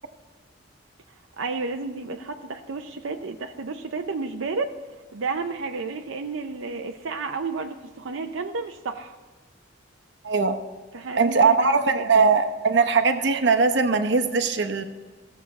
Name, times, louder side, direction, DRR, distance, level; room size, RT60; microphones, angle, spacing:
voice 1, 1.4-4.7 5.1-9.2 10.9-12.3, right 4 dB, 85° right, 5 dB, 0.6 m, -32 dB
voice 2, 10.2-10.5 11.2-14.8, right 4 dB, 60° right, 6 dB, 0.9 m, -20 dB
16.0 x 7.3 x 4.1 m, 1.4 s
head